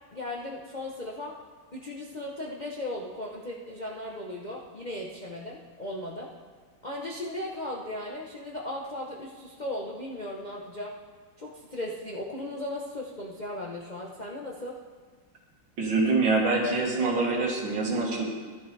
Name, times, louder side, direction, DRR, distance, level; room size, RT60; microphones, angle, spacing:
voice 1, 0.1-1.3 1.7-6.3 6.8-10.9 11.4-14.8, left 1 dB, 35° left, -2 dB, 0.7 m, -37 dB
voice 2, 15.8-18.2, right 3 dB, 80° right, -1 dB, 2.4 m, -25 dB
13.5 x 11.5 x 3.3 m, 1.5 s
omnidirectional pair, 2.0 m